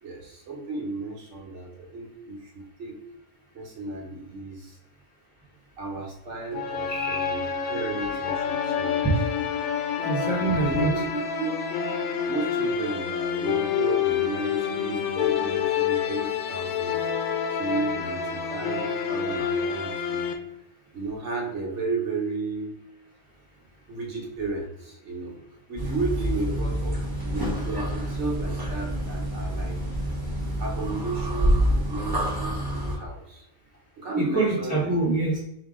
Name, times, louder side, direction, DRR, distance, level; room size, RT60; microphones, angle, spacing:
voice 1, 0.0-3.0 3.5-4.8 5.8-9.3 10.5-11.5 12.3-17.1 17.5-20.2 20.9-22.7 23.9-25.4 25.7-27.0 27.2-29.8 30.6-33.4 34.0-34.9, right 3 dB, 60° right, 0 dB, 1.3 m, -33 dB
sound 1, 6.5-20.3, left 7 dB, 85° left, 1.1 m, -28 dB
voice 2, 6.9-7.4 10.0-10.9 34.2-35.4, right 3 dB, 10° left, -7 dB, 0.7 m, -26 dB
sound 2, 25.8-33.0, equal, 20° right, 0.9 m, -27 dB
4.8 x 2.7 x 3.6 m, 0.84 s
omnidirectional pair, 1.4 m